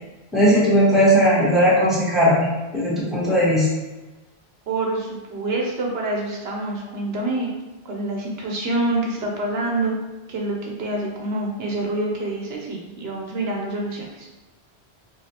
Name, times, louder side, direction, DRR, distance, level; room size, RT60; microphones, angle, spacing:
voice 1, 0.3-2.5 2.7-3.7, equal, ahead, -8 dB, 1.2 m, -17 dB
voice 2, 4.7-7.5 7.8-10.0 10.3-14.3, right 2 dB, 70° right, -1 dB, 0.9 m, -26 dB
4.9 x 2.7 x 2.8 m, 1.1 s
omnidirectional pair, 1.1 m